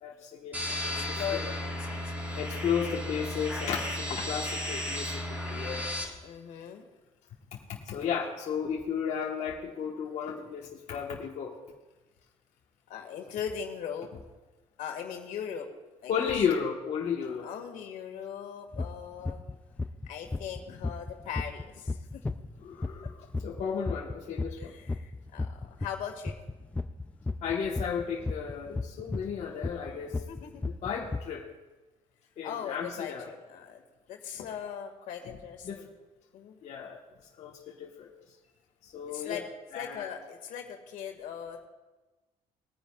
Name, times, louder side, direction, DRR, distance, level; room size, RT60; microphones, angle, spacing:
voice 1, 0.0-1.5 2.3-5.9 7.5-11.5 13.1-13.4 16.1-17.5 22.6-23.2 23.4-24.8 27.4-30.2 30.6-31.5 32.4-33.3 35.6-35.8 36.6-37.0 37.4-38.1 38.8-39.4 39.7-40.1, left 7 dB, 55° left, -2 dB, 1.3 m, -34 dB
sound 1, 0.5-6.0, left 1 dB, 10° right, 3.9 m, -34 dB
voice 2, 0.7-2.7 6.2-6.8 12.9-14.1 14.8-15.7 16.0-16.3 17.2-19.4 20.0-22.2 24.6-26.4 30.3-30.6 32.4-33.8 34.1-35.9 36.3-36.6 39.1-39.4 39.7-41.7, left 8 dB, 80° left, 3 dB, 2.0 m, -40 dB
sound 2, 18.7-18.9 19.3-19.5 19.8-26.0 26.3-31.2, left 3 dB, 10° left, 0.4 m, -33 dB
21.0 x 9.9 x 2.4 m, 1.2 s
cardioid pair, 135°, 14 cm